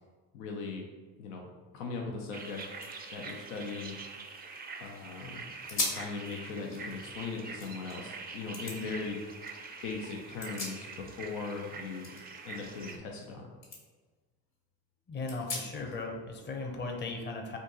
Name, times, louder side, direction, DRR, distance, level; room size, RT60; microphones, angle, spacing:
voice 1, 0.3-0.9 1.2-2.6 3.1-3.9 4.8-9.2 9.8-12.1 12.4-13.5, left 4 dB, 85° left, 0 dB, 0.6 m, -39 dB
sound 1, 2.2-2.3 2.5-4.8 5.2-5.3 5.7-6.1 6.5-8.0 8.5-8.8 10.1-11.3 11.5-13.3 13.6-13.8 14.3-14.4 15.3-16.0, left 2 dB, 60° left, 1.4 m, -40 dB
sound 2, 2.3-13.0, right 4 dB, 20° right, 0.4 m, -45 dB
voice 2, 15.1-17.6, left 3 dB, 20° left, 2 dB, 0.6 m, -37 dB
2.6 x 2.6 x 3.7 m, 1.4 s
hypercardioid pair, 55°, 50 cm